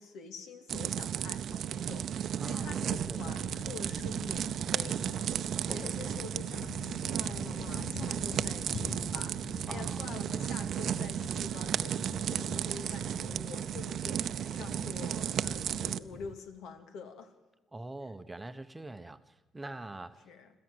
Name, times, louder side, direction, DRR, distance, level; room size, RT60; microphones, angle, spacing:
voice 1, 0.0-17.3 20.2-20.5, left 5 dB, 80° left, 7 dB, 2.4 m, -47 dB
sound 1, 0.7-16.0, right 9 dB, 55° right, 0.6 m, -34 dB
voice 2, 2.4-2.8 3.1-3.4 5.7-6.0 9.7-10.0 17.7-20.3, right 2 dB, 10° right, 10 dB, 0.8 m, -43 dB
sound 2, 2.6-16.4, left 6 dB, 45° left, 1.0 m, -47 dB
26.5 x 14.0 x 7.9 m, 1.2 s
cardioid pair, 135°, 0 cm